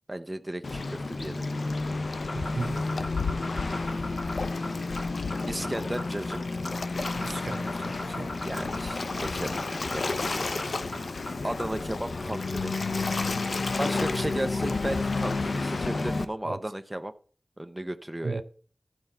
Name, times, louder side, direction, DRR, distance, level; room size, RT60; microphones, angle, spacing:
voice 1, 0.1-1.7 5.5-6.4 8.4-10.5 11.4-12.7 13.8-17.1 17.6-18.4, right 1 dB, 15° right, 0.6 m, -35 dB
Waves surf, 0.6-16.2, left 3 dB, 70° left, 0.7 m, -30 dB
sound 1, 2.2-11.8, left 1 dB, 45° left, 2.8 m, -39 dB
voice 2, 2.3-2.8 7.2-8.4 16.5-16.6 18.2-18.4, right 3 dB, 65° right, 0.7 m, -35 dB
12.5 x 4.6 x 5.5 m
wide cardioid pair, 85°, 0 cm